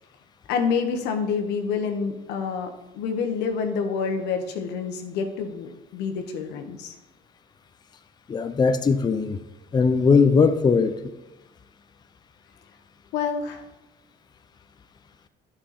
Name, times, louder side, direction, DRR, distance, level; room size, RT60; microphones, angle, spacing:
voice 1, 0.5-6.9 13.1-13.6, left 5 dB, 90° left, 5 dB, 1.1 m, -28 dB
voice 2, 8.3-9.4 9.7-11.0, left 5 dB, 25° left, 10 dB, 0.5 m, -19 dB
11.0 x 5.6 x 4.2 m, 0.99 s
cardioid pair, 110°, 17 cm